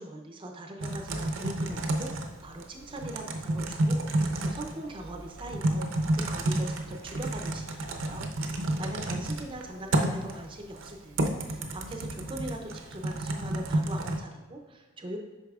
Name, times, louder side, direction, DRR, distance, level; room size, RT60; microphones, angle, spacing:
voice 1, 0.0-8.3 8.5-15.2, right 1 dB, 25° right, 3 dB, 0.5 m, -41 dB
Typing, 0.8-14.2, right 1 dB, 65° right, 0.6 m, -30 dB
8.1 x 5.6 x 2.4 m, 1.3 s
head